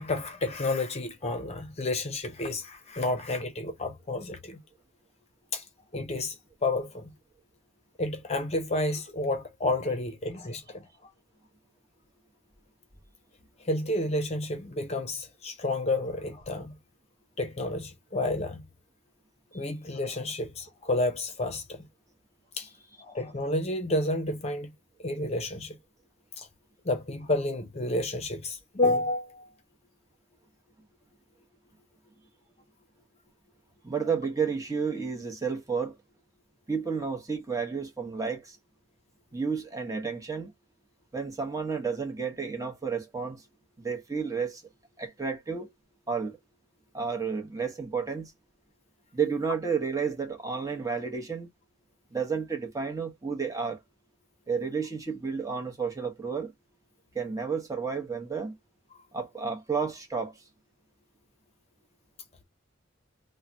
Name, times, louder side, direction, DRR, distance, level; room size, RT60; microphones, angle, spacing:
voice 1, 0.0-4.6 5.5-5.6 5.9-6.3 6.6-7.1 8.0-11.1 13.6-16.7 17.4-18.6 19.5-21.9 22.6-22.7 23.0-24.7 25.0-25.8 26.4-26.5 26.8-29.6, left 2 dB, 35° left, 0.7 m, -30 dB
voice 2, 33.8-36.0 36.7-38.6 39.3-40.5 41.1-43.4 43.8-44.6 45.0-45.7 46.1-46.4 46.9-48.3 49.1-51.5 52.1-53.8 54.5-56.5 57.1-58.5 59.1-60.3, right 5 dB, 20° right, 0.9 m, -31 dB
3.1 x 2.1 x 2.5 m
head